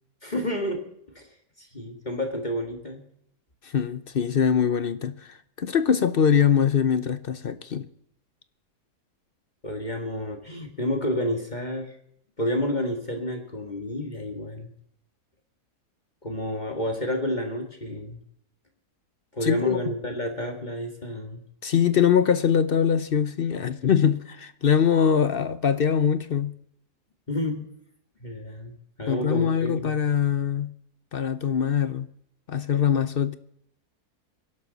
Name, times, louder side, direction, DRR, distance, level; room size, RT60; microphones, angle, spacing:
voice 1, 0.2-0.8 1.2-1.3 1.6-3.0 9.6-12.0 12.4-14.7 16.2-18.2 19.3-21.4 27.3-27.7 28.2-30.0, left 1 dB, 30° left, 1.9 m, -30 dB
voice 2, 3.6-7.9 19.4-19.8 21.6-26.5 29.1-30.7 31.1-32.1 32.5-33.4, left 7 dB, 55° left, 0.7 m, -23 dB
22.0 x 12.0 x 4.1 m
omnidirectional pair, 1.7 m